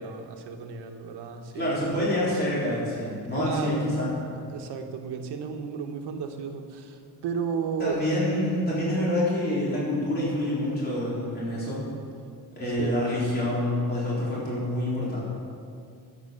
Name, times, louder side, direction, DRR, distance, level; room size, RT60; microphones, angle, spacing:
voice 1, 0.0-1.9 3.3-4.0 4.3-8.0 12.7-13.1, right 6 dB, 85° right, 5 dB, 1.4 m, -34 dB
voice 2, 1.5-4.1 4.4-4.5 7.8-11.8 12.5-15.2, left 1 dB, 25° left, -8 dB, 4.0 m, -27 dB
13.0 x 8.2 x 6.7 m, 2.3 s
cardioid pair, 155°, 40 cm